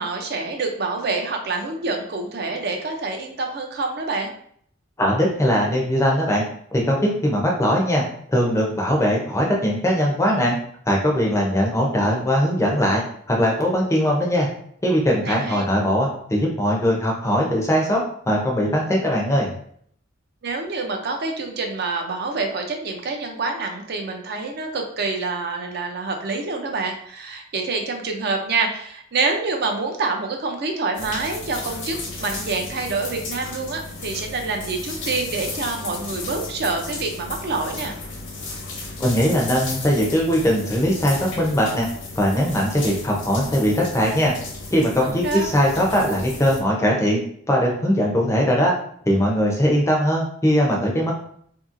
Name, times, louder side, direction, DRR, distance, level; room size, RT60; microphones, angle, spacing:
voice 1, 0.0-4.3 15.2-15.7 20.4-38.0 45.0-45.5, right 3 dB, 50° right, 3 dB, 0.4 m, -27 dB
voice 2, 5.0-6.4 6.7-8.0 8.3-10.6 10.9-13.0 13.3-14.5 14.8-19.5 39.0-41.9 42.2-44.3 44.7-47.2 47.5-48.7 49.1-51.1, equal, 15° left, -1 dB, 0.4 m, -20 dB
sound 1, 30.9-46.6, left 3 dB, 60° left, 0.6 m, -34 dB
2.7 x 2.6 x 2.5 m, 0.64 s
head